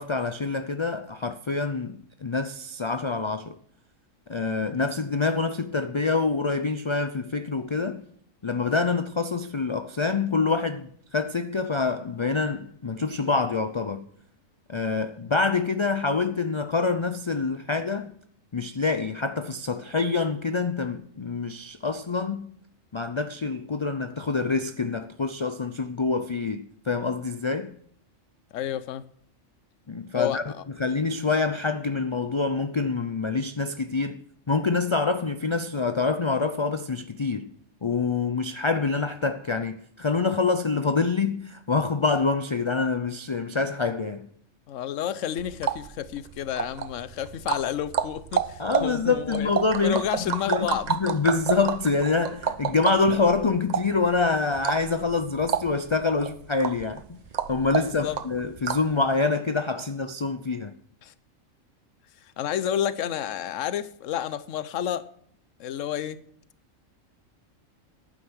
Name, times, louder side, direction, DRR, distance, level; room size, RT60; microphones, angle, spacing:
voice 1, 0.0-3.6 4.3-8.0 8.4-14.1 14.7-18.1 18.5-22.5 22.9-27.8 29.9-30.4 30.8-34.2 34.5-37.5 37.8-44.3 48.6-57.2 57.5-60.7, left 4 dB, 40° left, 0.4 m, -26 dB
voice 2, 28.5-29.0 30.1-30.4 44.7-49.5 49.8-50.9 57.8-58.2 61.0-61.1 62.4-65.1 65.6-66.2, left 10 dB, 75° left, 1.1 m, -30 dB
sound 1, 45.4-59.0, right 7 dB, 50° right, 0.5 m, -31 dB
11.0 x 9.1 x 6.2 m
omnidirectional pair, 1.4 m